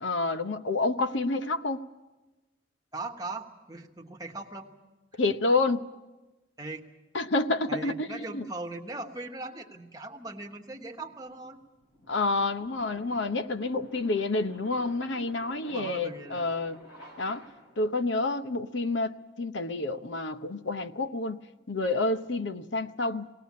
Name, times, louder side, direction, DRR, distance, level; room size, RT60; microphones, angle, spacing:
voice 1, 0.0-1.8 5.2-5.9 7.1-8.5 12.1-16.8 17.2-17.4 17.8-21.4 21.7-23.3, left 3 dB, 70° left, 0.8 m, -29 dB
voice 2, 2.9-4.7 6.6-6.8 7.7-11.6 15.7-16.4, right 2 dB, 20° right, 1.2 m, -39 dB
sound 1, 10.3-17.9, equal, 55° left, 5.4 m, -53 dB
19.0 x 18.5 x 8.4 m
head